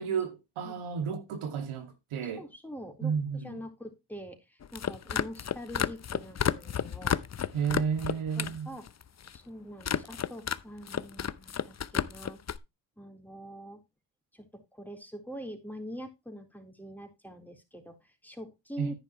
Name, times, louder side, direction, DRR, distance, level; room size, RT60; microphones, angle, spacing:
voice 1, 0.0-2.5 3.0-3.5 7.5-8.7 18.8-18.9, right 6 dB, 80° right, 2.3 m, -32 dB
voice 2, 2.2-7.2 8.4-8.9 9.3-12.4 13.0-13.8 14.3-18.9, equal, 5° left, 3.9 m, -44 dB
sound 1, 4.6-8.6 8.9-9.4 9.8-10.6 10.9-12.6, left 8 dB, 35° left, 0.8 m, -31 dB
10.5 x 9.9 x 3.1 m
supercardioid pair, 70°, 49 cm